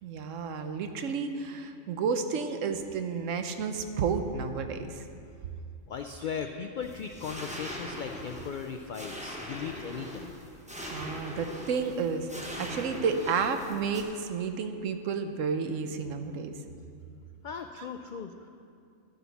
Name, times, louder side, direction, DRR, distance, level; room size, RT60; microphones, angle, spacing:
voice 1, 0.0-5.0 10.9-12.3 12.6-16.5 17.8-17.9, right 5 dB, 75° right, 7 dB, 1.1 m, -31 dB
voice 2, 5.9-10.4 17.4-18.3, left 6 dB, 85° left, 5 dB, 0.4 m, -37 dB
sound 1, 6.8-14.0, equal, 5° right, 1.1 m, -41 dB
11.5 x 10.0 x 4.1 m, 2.5 s
omnidirectional pair, 1.4 m